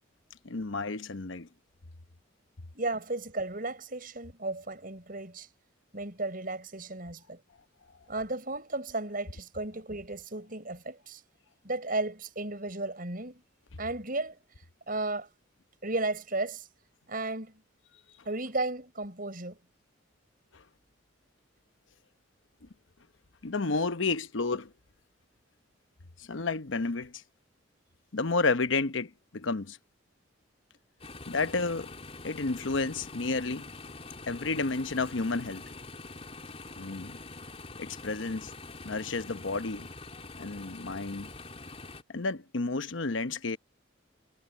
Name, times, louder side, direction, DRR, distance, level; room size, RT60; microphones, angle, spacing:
voice 1, 0.4-1.5 20.5-20.6 23.4-24.7 26.2-27.2 28.1-29.8 31.3-31.9 32.2-33.7 34.3-35.7 36.8-37.2 37.8-38.5 38.8-39.9 40.4-41.3 42.1-43.6, left 3 dB, 75° left, 0.9 m, -31 dB
voice 2, 2.7-5.5 5.9-7.4 8.1-11.2 11.6-13.4 13.8-14.4 14.9-15.3 15.8-16.7 17.1-17.6 18.2-19.6, right 2 dB, 45° right, 6.4 m, -34 dB
sound 1, 31.0-42.0, left 3 dB, 30° left, 3.8 m, -45 dB
head